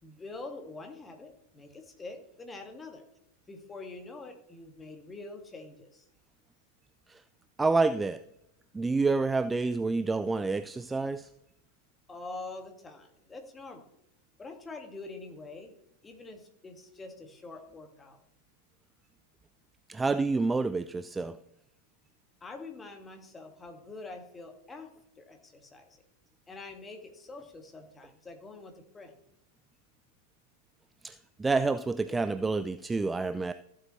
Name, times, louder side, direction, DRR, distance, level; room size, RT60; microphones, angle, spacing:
voice 1, 0.0-3.0 3.5-6.1 12.1-13.9 14.4-15.8 16.0-18.2 22.4-26.0 26.5-29.1, left 3 dB, 15° left, 4 dB, 1.9 m, -45 dB
voice 2, 7.6-8.2 8.7-11.3 19.9-21.4 31.0-33.5, right 3 dB, 10° right, 13 dB, 0.4 m, -28 dB
14.5 x 8.5 x 3.2 m, 0.80 s
figure-of-eight pair, 90°, 0 cm